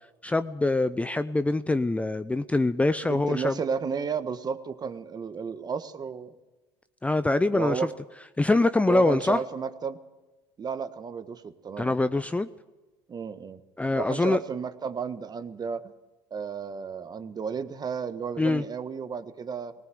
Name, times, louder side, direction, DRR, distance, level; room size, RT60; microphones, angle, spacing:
voice 1, 0.2-3.6 7.0-7.9 8.4-9.4 11.8-12.5 13.8-14.4 18.4-18.6, left 2 dB, 10° left, 13 dB, 0.6 m, -24 dB
voice 2, 3.1-6.3 7.5-7.9 8.9-10.0 10.6-12.0 13.1-13.6 14.0-15.9 16.3-19.7, right 6 dB, 30° right, 11 dB, 1.4 m, -33 dB
19.0 x 18.0 x 7.7 m, 1.2 s
hypercardioid pair, 80°, 13 cm